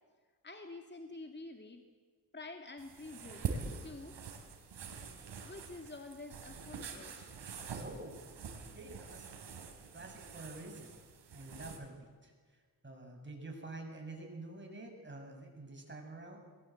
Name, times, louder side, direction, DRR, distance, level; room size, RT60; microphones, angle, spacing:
voice 1, 0.4-1.8 2.3-4.2 5.4-7.2, left 2 dB, 25° left, 5 dB, 2.3 m, -48 dB
sound 1, 2.8-11.8, right 5 dB, 80° right, 3.8 m, -45 dB
voice 2, 7.8-8.1 8.7-9.4 9.9-11.0 11.3-16.4, right 2 dB, 25° right, 2 dB, 7.5 m, -48 dB
22.0 x 21.0 x 7.9 m, 1.5 s
cardioid pair, 60°, 42 cm